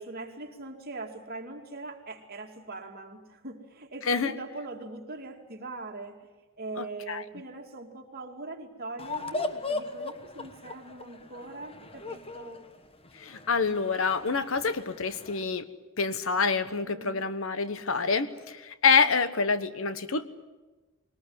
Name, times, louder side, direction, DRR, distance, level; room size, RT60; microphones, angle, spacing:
voice 1, 0.0-6.2 6.6-12.6 16.8-17.3 19.1-19.2, right 2 dB, 50° right, 2 dB, 2.6 m, -41 dB
voice 2, 6.8-7.2 13.2-15.7 16.0-20.3, left 5 dB, 75° left, 13 dB, 1.1 m, -27 dB
sound 1, 9.0-15.4, left 3 dB, 30° left, 1.2 m, -38 dB
21.5 x 19.0 x 9.7 m, 1.2 s
head